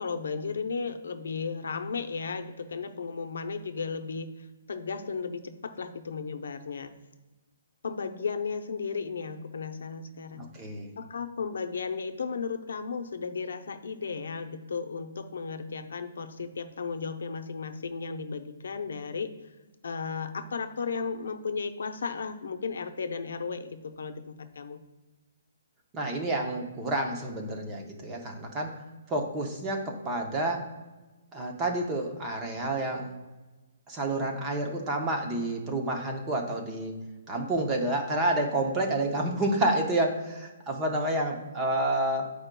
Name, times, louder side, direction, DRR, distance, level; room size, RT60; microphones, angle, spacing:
voice 1, 0.0-6.9 7.8-10.5 11.0-19.5 19.8-24.8, left 5 dB, 70° left, 8 dB, 0.6 m, -35 dB
voice 2, 10.4-10.9 25.9-28.8 29.1-30.7 31.3-33.1 33.9-36.9 37.3-42.3, right 1 dB, 10° right, 2 dB, 0.6 m, -29 dB
9.2 x 4.8 x 2.2 m, 1.2 s
hypercardioid pair, 180°, 0 cm